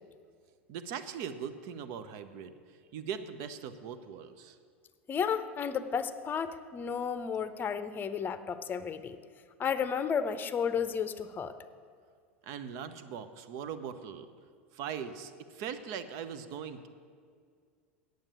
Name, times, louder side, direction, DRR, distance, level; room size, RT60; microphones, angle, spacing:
voice 1, 0.7-4.6 12.4-14.3 14.7-16.9, right 7 dB, 55° right, 11 dB, 0.8 m, -40 dB
voice 2, 5.1-9.2 9.6-11.5, left 7 dB, 30° left, 11 dB, 0.7 m, -32 dB
8.9 x 7.8 x 8.5 m, 2.1 s
hypercardioid pair, 85°, 7 cm